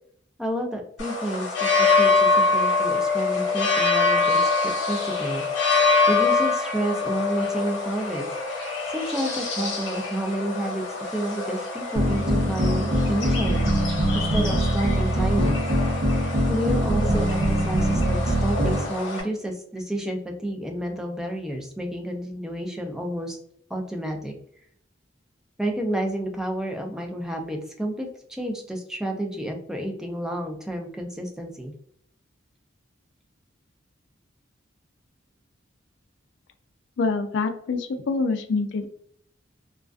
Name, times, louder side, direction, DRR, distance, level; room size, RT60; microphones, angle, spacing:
voice 1, 0.4-5.4 5.7-10.9 11.1-15.5 16.5-23.4 23.7-24.3 25.6-31.7, right 1 dB, 5° right, 2 dB, 0.4 m, -30 dB
sound 1, 1.0-19.2, left 4 dB, 85° left, 0.9 m, -25 dB
sound 2, 12.0-18.8, right 1 dB, 55° right, 0.7 m, -23 dB
voice 2, 37.0-38.9, left 4 dB, 65° left, 7 dB, 0.4 m, -25 dB
2.4 x 2.3 x 2.2 m, 0.66 s
head